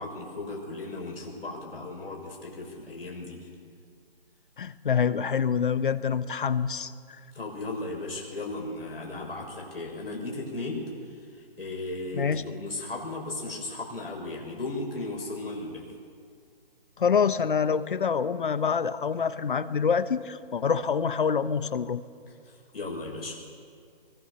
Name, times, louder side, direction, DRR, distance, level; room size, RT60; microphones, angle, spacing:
voice 1, 0.0-3.4 7.3-15.9 22.3-23.4, left 2 dB, 75° left, -1 dB, 6.7 m, -36 dB
voice 2, 4.6-6.9 12.1-12.4 17.0-22.0, left 6 dB, 60° left, 13 dB, 1.2 m, -26 dB
23.0 x 22.5 x 6.9 m, 2.2 s
figure-of-eight pair, 140°, 30 cm